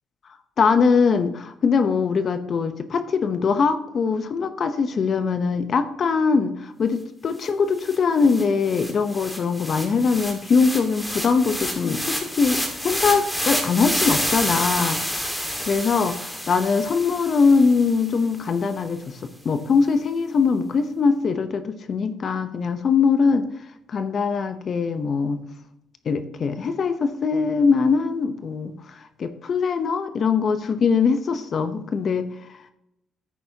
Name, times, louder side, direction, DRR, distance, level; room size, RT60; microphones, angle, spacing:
voice 1, 0.6-23.5 23.9-25.4 26.0-28.7 29.2-32.3, left 5 dB, 55° left, 10 dB, 0.8 m, -22 dB
sound 1, 7.5-7.6 7.8-18.2, equal, 5° left, 1.8 m, -29 dB
10.0 x 8.4 x 2.9 m, 0.81 s
cardioid pair, 80°, 0 cm